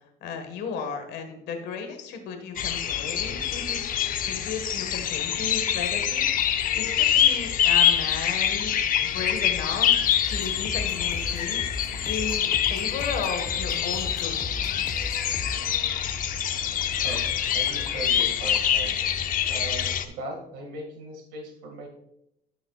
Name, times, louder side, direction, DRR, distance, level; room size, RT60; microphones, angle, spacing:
voice 1, 0.2-8.7 9.0-11.6 12.0-14.4, left 5 dB, 80° left, 5 dB, 1.6 m, -35 dB
sound 1, 2.6-20.1, left 9 dB, 55° left, 0.7 m, -25 dB
sound 2, 10.2-15.5, left 2 dB, 20° left, 1.2 m, -37 dB
voice 2, 16.9-17.3 17.5-18.9 19.5-21.9, right 2 dB, 90° right, 2 dB, 2.0 m, -38 dB
13.0 x 6.0 x 2.4 m, 0.78 s
cardioid pair, 110°, 17 cm